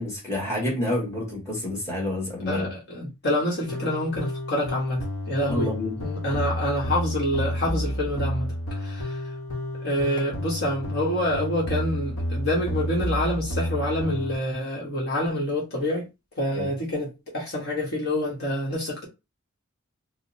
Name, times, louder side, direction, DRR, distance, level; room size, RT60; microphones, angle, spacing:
voice 1, 0.0-2.7 5.4-6.0 16.5-16.7, left 1 dB, 15° left, 1.5 m, -28 dB
voice 2, 2.5-5.7 6.0-8.5 8.8-9.2 9.8-16.1 16.4-19.1, left 1 dB, 50° left, 1.1 m, -27 dB
sound 1, 3.7-14.3, equal, 70° left, 0.9 m, -30 dB
4.9 x 2.0 x 2.6 m
head